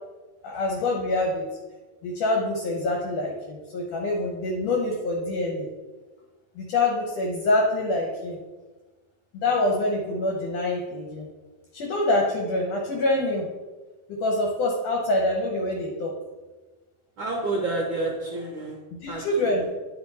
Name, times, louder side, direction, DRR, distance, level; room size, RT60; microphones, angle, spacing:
voice 1, 0.4-1.5 2.0-5.7 6.6-8.4 9.3-11.3 11.7-13.5 14.1-16.1 19.0-19.6, left 2 dB, 65° left, -1 dB, 1.9 m, -25 dB
voice 2, 17.2-18.8 19.1-19.5, right 2 dB, 75° right, -1 dB, 1.1 m, -29 dB
9.6 x 4.2 x 4.2 m, 1.3 s
omnidirectional pair, 3.6 m